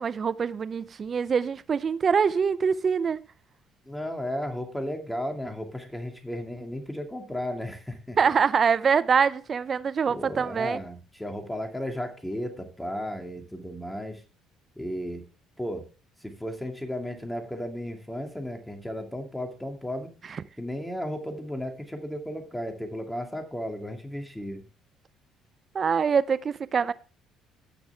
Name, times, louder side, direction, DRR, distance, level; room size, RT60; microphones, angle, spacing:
voice 1, 0.0-3.2 8.2-10.8 20.3-20.4 25.7-26.9, right 6 dB, 45° right, 0.6 m, -24 dB
voice 2, 3.9-8.2 10.1-14.2 14.8-15.2 15.6-15.9 16.2-20.1 20.6-24.6, equal, 5° left, 2.4 m, -34 dB
16.0 x 6.2 x 3.4 m
hypercardioid pair, 60°, 0 cm